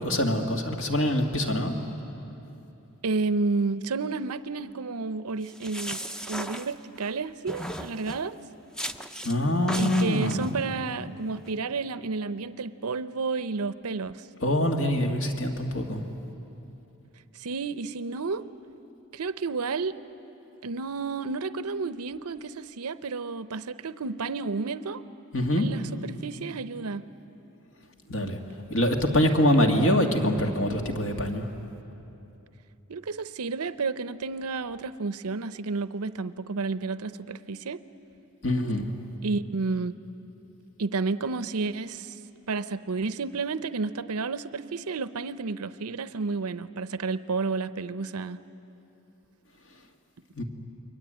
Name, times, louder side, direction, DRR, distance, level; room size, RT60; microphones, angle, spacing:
voice 1, 0.0-1.7 9.2-10.5 14.4-16.0 25.3-25.7 28.1-28.4 28.7-31.5 38.4-38.9 50.4-50.5, left 1 dB, 60° left, 3 dB, 2.3 m, -24 dB
voice 2, 3.0-6.0 6.3-8.3 9.8-14.3 17.3-18.4 19.1-19.9 20.6-25.0 25.6-27.1 32.9-37.8 39.2-39.9 40.8-42.1 42.5-48.4, right 4 dB, 80° right, 14 dB, 0.7 m, -31 dB
sound 1, 5.4-7.1 7.5-8.3 8.7-9.4 9.7-10.5, equal, 5° left, 0.6 m, -36 dB
29.0 x 22.5 x 9.0 m, 2.9 s
head